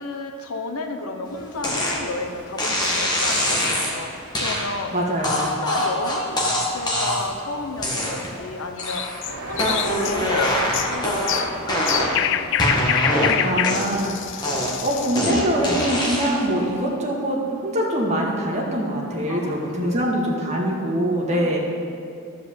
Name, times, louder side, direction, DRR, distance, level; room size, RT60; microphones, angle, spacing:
voice 1, 0.0-4.9 5.4-9.2 9.5-12.6 19.3-20.1 21.3-21.6, left 3 dB, 80° left, 5 dB, 1.0 m, -32 dB
sound 1, 1.6-2.0 2.6-3.9 4.3-4.6 5.2-7.4 7.8-8.4 8.8-9.2 9.5-12.3 12.6-14.1 14.4-16.5, equal, 20° left, 1.6 m, -23 dB
voice 2, 4.9-5.5 13.4-21.6, right 1 dB, 30° right, -3 dB, 1.9 m, -24 dB
sound 2, 8.8-15.4, left 11 dB, 55° left, 0.3 m, -26 dB
sound 3, 9.2-15.1, right 1 dB, 85° right, 2.5 m, -39 dB
13.0 x 4.9 x 7.4 m, 2.5 s
head